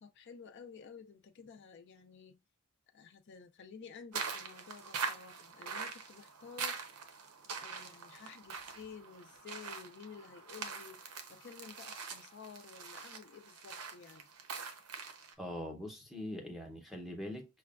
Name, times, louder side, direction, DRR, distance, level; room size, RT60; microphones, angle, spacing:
voice 1, 0.0-2.4 2.9-6.8 7.5-11.0 11.3-14.3, left 6 dB, 50° left, 0.4 m, -52 dB
sound 1, 4.1-15.3, right 5 dB, 90° right, 0.7 m, -43 dB
voice 2, 15.4-17.5, left 1 dB, ahead, 0.7 m, -42 dB
5.8 x 2.2 x 2.3 m
head